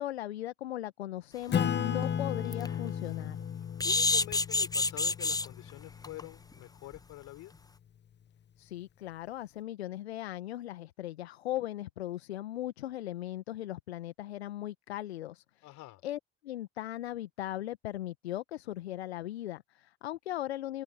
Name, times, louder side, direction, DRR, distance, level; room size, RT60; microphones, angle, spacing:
voice 1, 0.0-3.4 8.6-20.8, left 13 dB, 80° left, 1.4 m, -38 dB
Acoustic guitar / Strum, 1.5-6.5, left 8 dB, 35° left, 1.0 m, -35 dB
sound 1, 1.5-1.6 2.0-2.1 2.5-2.7 3.8-5.5 6.0-6.2 6.5-6.6 6.9-7.0, left 3 dB, 10° left, 1.0 m, -28 dB
voice 2, 3.8-7.5 15.6-16.0, left 18 dB, 65° left, 6.0 m, -46 dB
figure-of-eight pair, 50°, 32 cm